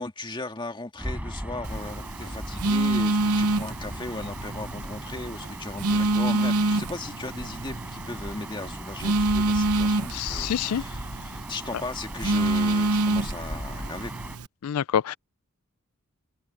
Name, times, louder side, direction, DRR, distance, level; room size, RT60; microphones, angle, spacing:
voice 1, 0.0-14.3, left 2 dB, 20° left, 2.0 m, -37 dB
Gull seagull / Ocean, 1.0-14.4, equal, 5° right, 6.4 m, -37 dB
Telephone, 1.6-14.5, right 2 dB, 85° right, 0.9 m, -27 dB
voice 2, 10.1-10.8 14.6-15.1, left 9 dB, 90° left, 0.4 m, -26 dB
head